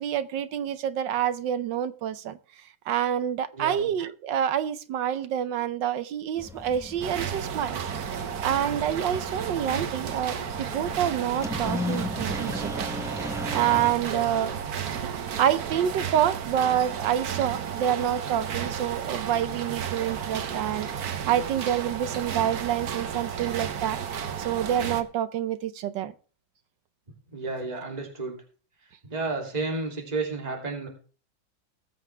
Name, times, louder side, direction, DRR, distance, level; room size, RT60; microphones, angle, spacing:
voice 1, 0.0-2.4 2.9-7.8 8.4-12.9 13.5-14.6 15.4-24.0 24.4-26.1, right 10 dB, 70° right, 1.4 m, -27 dB
voice 2, 3.5-3.9 14.0-14.6 27.3-28.4 29.0-30.9, right 3 dB, 20° right, 2.9 m, -32 dB
sound 1, 6.4-13.9, left 1 dB, ahead, 0.9 m, -36 dB
sound 2, 7.0-25.0, right 8 dB, 55° right, 1.4 m, -33 dB
20.0 x 7.7 x 3.4 m
omnidirectional pair, 2.1 m